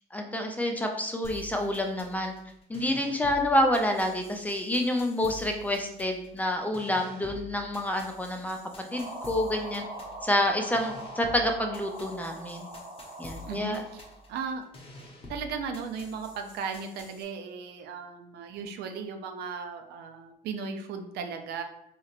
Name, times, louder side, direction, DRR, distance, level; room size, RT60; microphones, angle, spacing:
voice 1, 0.1-2.3 2.7-8.6 8.9-9.8 10.2-12.7 13.2-13.8, left 1 dB, 10° left, 3 dB, 0.5 m, -28 dB
sound 1, 1.2-17.2, left 2 dB, 35° left, 0.8 m, -48 dB
sound 2, 8.9-14.3, right 1 dB, 50° right, 0.9 m, -42 dB
voice 2, 13.5-14.0 14.3-14.6 15.3-21.6, right 5 dB, 75° right, 5 dB, 0.5 m, -36 dB
4.1 x 3.0 x 2.4 m, 0.77 s
cardioid pair, 110°, 17 cm